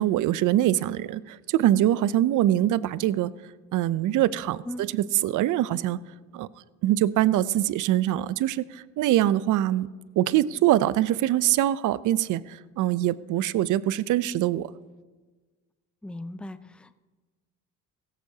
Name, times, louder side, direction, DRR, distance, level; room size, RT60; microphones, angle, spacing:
voice 1, 0.0-3.3 3.7-6.0 6.3-6.5 6.8-9.9 10.2-14.7, right 13 dB, 60° right, 18 dB, 0.6 m, -23 dB
voice 2, 16.0-17.0, left 1 dB, 5° left, 12 dB, 0.5 m, -38 dB
16.5 x 14.5 x 2.8 m, 1.3 s
supercardioid pair, 85°, 36 cm